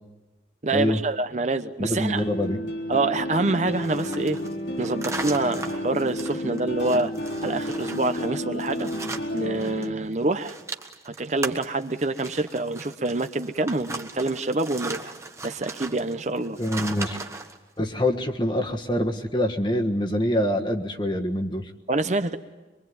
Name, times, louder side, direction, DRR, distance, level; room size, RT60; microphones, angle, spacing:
voice 1, 0.6-2.2 2.9-4.4 4.8-7.1 7.4-10.6 11.0-15.1 15.4-16.6 21.9-22.4, right 2 dB, 40° right, 9 dB, 0.9 m, -26 dB
voice 2, 1.8-2.6 16.6-17.2 17.8-21.7, left 1 dB, 25° left, 4 dB, 1.5 m, -25 dB
sound 1, 1.9-9.9, equal, 75° left, 3.7 m, -31 dB
sound 2, 3.7-9.9 10.1-17.6, right 3 dB, 15° right, 1.3 m, -38 dB
25.0 x 23.5 x 9.4 m, 1.2 s
head